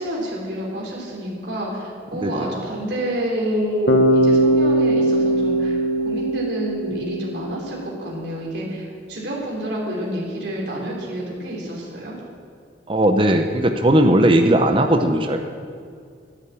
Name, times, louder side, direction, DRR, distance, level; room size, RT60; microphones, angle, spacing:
voice 1, 0.0-12.1, right 1 dB, 75° right, -3 dB, 3.3 m, -28 dB
Bass guitar, 3.9-7.8, right 1 dB, 65° left, 1.2 m, -19 dB
voice 2, 12.9-15.4, right 1 dB, 30° right, 5 dB, 0.7 m, -17 dB
10.5 x 9.2 x 8.5 m, 2.2 s
head